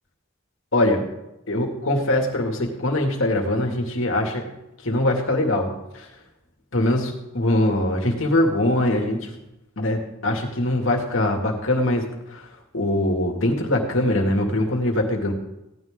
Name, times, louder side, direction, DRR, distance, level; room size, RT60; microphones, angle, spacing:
voice 1, 0.7-1.0 1.5-4.4 4.8-6.0 6.7-9.3 9.8-12.1 12.3-12.4 12.7-15.3, left 1 dB, 85° left, 2 dB, 2.3 m, -22 dB
16.5 x 11.5 x 3.7 m, 0.92 s
head